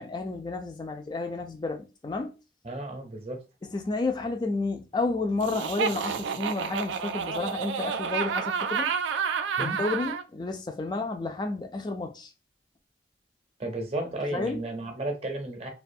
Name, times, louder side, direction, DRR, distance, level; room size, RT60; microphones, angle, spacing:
voice 1, 0.0-2.3 3.7-8.9 9.6-12.3 14.3-14.6, left 3 dB, 25° left, 0.3 m, -31 dB
voice 2, 2.6-3.4 9.6-9.8 13.6-15.7, right 1 dB, 35° right, 0.6 m, -33 dB
Laughter, 5.4-10.2, right 6 dB, 90° right, 0.3 m, -30 dB
2.4 x 2.2 x 2.6 m
head